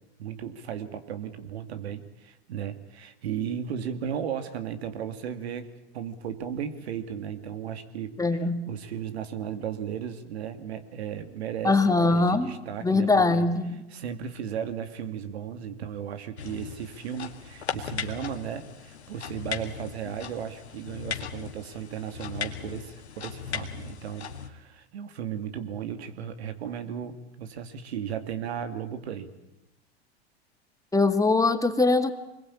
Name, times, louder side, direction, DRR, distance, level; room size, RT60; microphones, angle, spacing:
voice 1, 0.2-13.5 13.9-29.3, right 8 dB, 75° right, 9 dB, 2.3 m, -35 dB
voice 2, 8.2-8.6 11.6-12.5 12.8-13.8 30.9-32.1, left 3 dB, 10° left, 7 dB, 2.1 m, -22 dB
sound 1, 16.4-24.5, left 7 dB, 90° left, 2.2 m, -38 dB
25.0 x 21.5 x 8.7 m, 0.92 s
hypercardioid pair, 90°, 32 cm